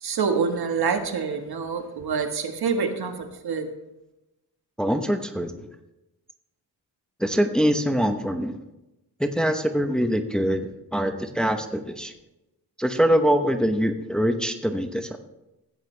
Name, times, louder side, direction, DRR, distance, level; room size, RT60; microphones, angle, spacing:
voice 1, 0.0-3.7, right 5 dB, 65° right, 5 dB, 1.6 m, -26 dB
voice 2, 4.8-5.7 7.2-8.6 9.2-12.1 12.8-15.2, equal, ahead, 6 dB, 0.9 m, -24 dB
14.5 x 9.0 x 3.3 m, 0.95 s
cardioid pair, 90°, 40 cm